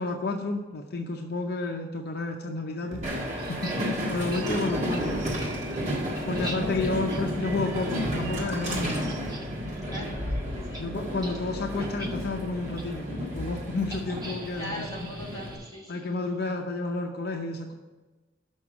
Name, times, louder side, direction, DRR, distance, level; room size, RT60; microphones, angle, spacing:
voice 1, 0.0-5.4 6.3-9.0 10.8-15.1 15.9-17.7, left 3 dB, 55° left, 3 dB, 0.6 m, -31 dB
sound 1, 2.8-12.6, right 2 dB, 85° right, 0.7 m, -41 dB
Train, 3.0-15.6, equal, 40° right, 1.7 m, -32 dB
sound 2, 3.4-3.8 4.3-4.5 4.9-5.0 5.4-9.5 9.8-10.0 10.3-10.4 10.7-10.8 11.2-11.4 11.8-12.1 12.8-12.9 13.9-16.3, right 2 dB, 20° right, 1.1 m, -43 dB
voice 2, 4.3-4.8 6.8-7.1 9.8-10.8 14.6-16.0, equal, 20° left, -2 dB, 1.5 m, -39 dB
6.4 x 6.0 x 7.3 m, 1.2 s
head